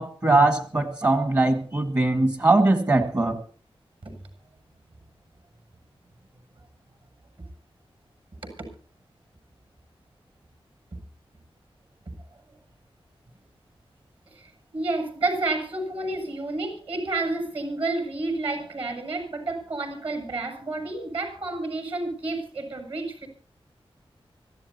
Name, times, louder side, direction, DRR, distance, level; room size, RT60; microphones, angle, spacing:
voice 1, 0.0-3.4, right 2 dB, 35° right, 1.7 m, -21 dB
voice 2, 14.3-23.3, right 2 dB, 60° right, 7.1 m, -30 dB
25.0 x 15.0 x 2.9 m
wide cardioid pair, 75°, 10 cm